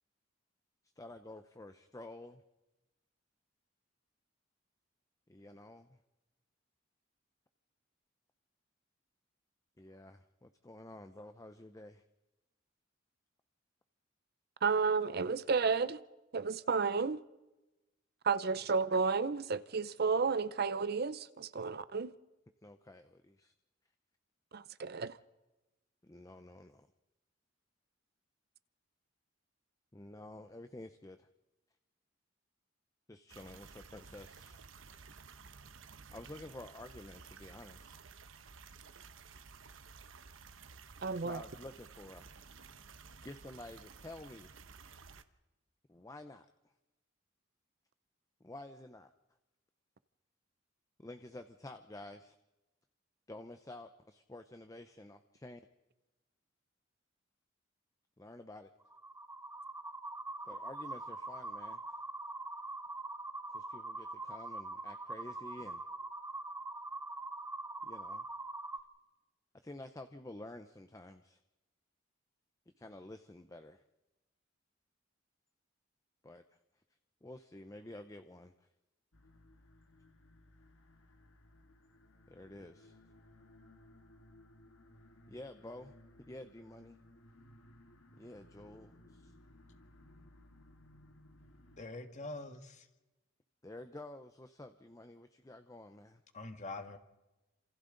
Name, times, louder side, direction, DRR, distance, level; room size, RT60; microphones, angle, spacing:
voice 1, 1.0-2.4 5.3-6.0 9.8-12.0 22.6-23.5 26.0-26.9 29.9-31.3 33.1-34.6 36.1-38.0 41.1-42.3 43.2-44.5 45.9-46.5 48.4-49.1 51.0-52.4 53.3-55.6 58.2-58.7 60.4-62.0 63.5-65.8 67.8-68.3 69.6-71.4 72.8-73.8 76.2-76.4 77.2-78.7 82.3-83.0 85.3-87.0 88.2-89.3 93.6-96.2, left 1 dB, 15° left, 0.7 m, -50 dB
voice 2, 14.6-16.0 16.3-17.2 18.2-22.1 24.5-25.2 41.0-41.4, right 5 dB, 55° right, 0.6 m, -32 dB
sound 1, 33.3-45.2, right 5 dB, 80° right, 1.0 m, -54 dB
sound 2, 58.8-68.8, right 2 dB, 10° right, 1.1 m, -43 dB
sound 3, 79.1-91.9, left 1 dB, 90° left, 1.8 m, -61 dB
voice 3, 91.8-92.9 96.3-97.0, left 2 dB, 40° left, 1.6 m, -44 dB
28.0 x 27.0 x 3.9 m
head